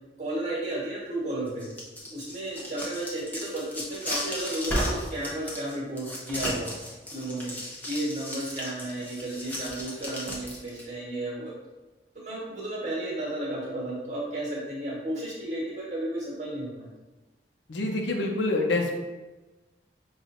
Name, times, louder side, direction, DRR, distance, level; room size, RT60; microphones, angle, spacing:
voice 1, 0.2-1.7 2.1-6.7 7.1-7.5 7.9-11.5 12.1-16.9, right 1 dB, 40° right, -5 dB, 1.4 m, -33 dB
sound 1, 1.5-10.8, equal, 10° left, 0.7 m, -34 dB
voice 2, 17.7-19.0, left 2 dB, 80° left, 1 dB, 0.7 m, -26 dB
5.8 x 2.5 x 2.6 m, 1.1 s
head